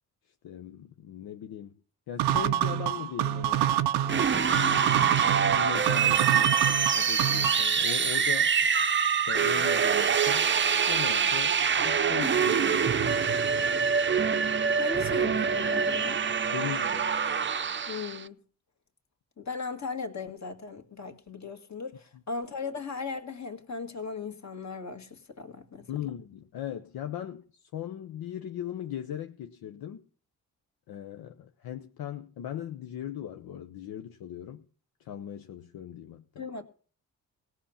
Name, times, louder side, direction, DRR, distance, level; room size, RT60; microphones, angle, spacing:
voice 1, 0.4-1.8 2.1-3.7 4.3-5.0 5.5-8.7 9.3-10.5 10.9-13.6 16.5-17.1 25.9-30.0 30.9-34.6 35.0-36.4, left 10 dB, 70° left, 0.8 m, -39 dB
sound 1, 2.2-7.8, right 12 dB, 85° right, 0.6 m, -27 dB
sound 2, 4.1-18.2, right 6 dB, 30° right, 0.7 m, -25 dB
voice 2, 14.8-16.2 17.9-18.4 19.4-25.9 36.4-36.6, left 4 dB, 45° left, 2.0 m, -37 dB
17.5 x 5.8 x 7.1 m
supercardioid pair, 50°, 38 cm